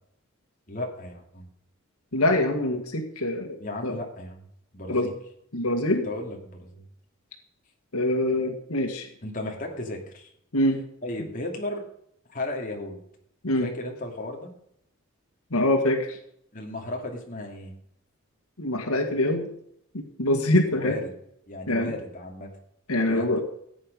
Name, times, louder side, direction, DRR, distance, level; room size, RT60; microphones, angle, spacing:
voice 1, 0.7-1.5 3.6-4.4 4.7-5.1 6.0-6.8 9.2-10.3 11.0-11.8 12.3-13.0 13.6-14.5 16.5-17.8 20.7-21.1 21.5-22.5 23.0-23.4, left 2 dB, 40° left, 1 dB, 2.6 m, -35 dB
voice 2, 2.1-3.6 3.8-4.0 4.9-5.1 5.5-6.1 7.9-9.1 10.5-10.8 13.4-13.7 15.5-16.2 18.6-19.5 19.9-20.9 21.7-21.9 22.9-23.4, left 1 dB, 85° left, 5 dB, 1.8 m, -24 dB
16.0 x 9.0 x 5.3 m, 0.71 s
head